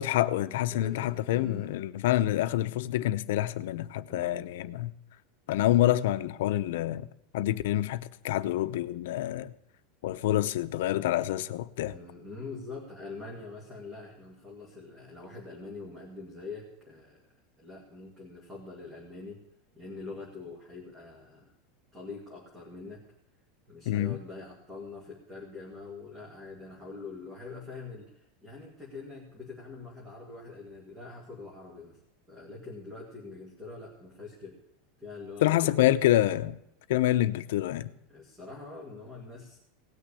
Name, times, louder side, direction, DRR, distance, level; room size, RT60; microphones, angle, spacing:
voice 1, 0.0-4.9 5.5-7.1 7.3-9.5 10.0-11.9 23.9-24.2 35.4-36.6 36.9-37.9, left 14 dB, 70° left, 0.7 m, -27 dB
voice 2, 0.7-1.7 4.1-4.4 11.9-17.3 17.6-19.4 19.8-21.5 21.9-23.0 23.7-32.0 32.3-34.6 35.0-36.0 38.1-39.6, left 3 dB, 10° right, 2.1 m, -44 dB
18.0 x 6.4 x 8.4 m
supercardioid pair, 175°, 0 cm